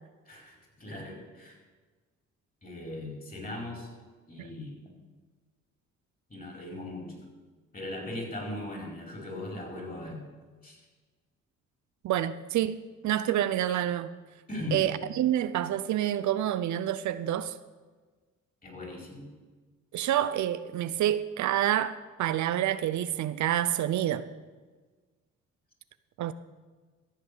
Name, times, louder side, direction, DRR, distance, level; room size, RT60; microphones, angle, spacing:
voice 1, 0.3-1.6 2.6-3.9 4.3-4.9 6.3-7.2 7.7-10.2 10.6-10.8 14.5-14.8 18.6-19.3, left 1 dB, 30° left, 0 dB, 4.6 m, -39 dB
voice 2, 12.0-12.8 13.0-14.1 14.7-17.5 19.9-24.2 26.2-26.3, right 12 dB, 70° right, 13 dB, 0.6 m, -28 dB
14.0 x 7.8 x 6.8 m, 1.4 s
cardioid pair, 90°, 30 cm